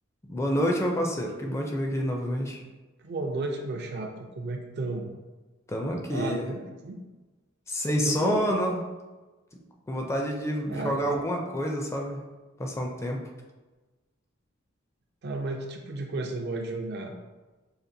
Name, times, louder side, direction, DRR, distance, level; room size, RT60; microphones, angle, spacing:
voice 1, 0.2-2.6 5.7-6.5 7.7-8.8 9.9-12.2 12.6-13.2, equal, 15° left, 1 dB, 0.4 m, -28 dB
voice 2, 3.0-4.1 4.4-5.1 6.1-7.0 8.0-8.7 10.7-11.2 15.2-17.1, right 2 dB, 55° right, 2 dB, 0.5 m, -33 dB
5.0 x 2.5 x 2.6 m, 1.2 s
head